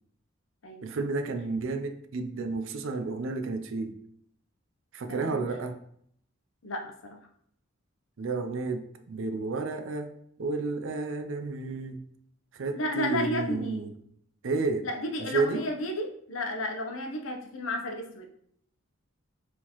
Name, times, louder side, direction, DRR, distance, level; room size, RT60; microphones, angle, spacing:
voice 1, 0.8-4.0 4.9-5.8 8.2-10.1 10.4-12.0 12.5-13.9 14.4-14.9 15.2-15.6, right 3 dB, 70° right, 8 dB, 0.4 m, -31 dB
voice 2, 5.1-5.4 6.6-7.2 12.7-13.8 14.8-18.3, left 1 dB, 75° left, 3 dB, 0.7 m, -33 dB
4.4 x 3.7 x 2.9 m, 0.67 s
head